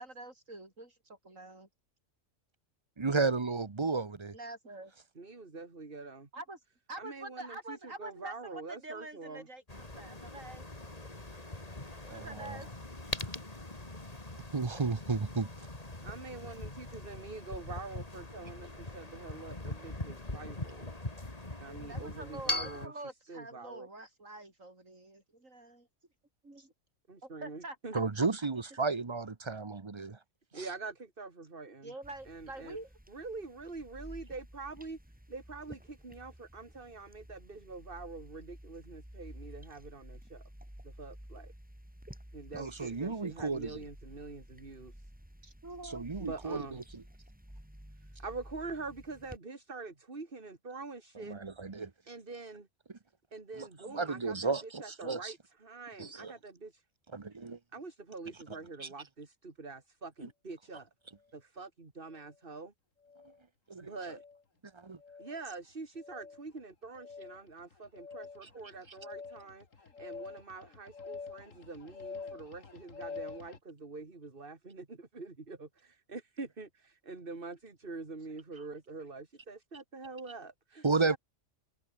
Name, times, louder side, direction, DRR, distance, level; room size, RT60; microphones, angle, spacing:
voice 1, 0.0-1.7 4.3-4.9 6.3-6.6 6.9-10.6 12.0-12.7 21.6-25.9 26.4-26.7 27.2-28.0 31.8-32.9 45.4-46.1, right 2 dB, 85° right, 6.5 m, -46 dB
voice 2, 3.0-4.3 12.1-12.6 14.5-15.5 27.9-30.2 30.5-30.7 42.5-43.8 45.8-47.0 51.2-51.9 53.6-55.3 56.0-56.3 57.1-57.6 58.8-58.9 63.7-63.9 64.7-65.0 80.8-81.2, right 4 dB, 25° right, 0.8 m, -33 dB
voice 3, 5.2-6.3 7.0-9.5 16.0-20.9 21.6-22.9 23.3-23.9 27.1-28.0 30.5-31.9 32.3-32.8 33.1-35.0 35.3-40.4 40.8-41.5 42.3-45.0 46.2-46.8 48.0-51.4 52.1-52.7 53.3-54.5 54.8-56.8 57.7-60.9 61.3-62.7 63.8-64.2 65.2-81.2, right 3 dB, 45° right, 2.7 m, -45 dB
sound 1, 9.7-22.9, left 2 dB, 30° left, 3.0 m, -41 dB
sound 2, 32.0-49.4, equal, 5° right, 3.1 m, -52 dB
sound 3, 62.1-62.3 63.0-63.4 64.0-64.4 65.0-65.4 66.0-66.4 66.9-73.6, left 5 dB, 80° left, 2.6 m, -47 dB
omnidirectional pair, 1.3 m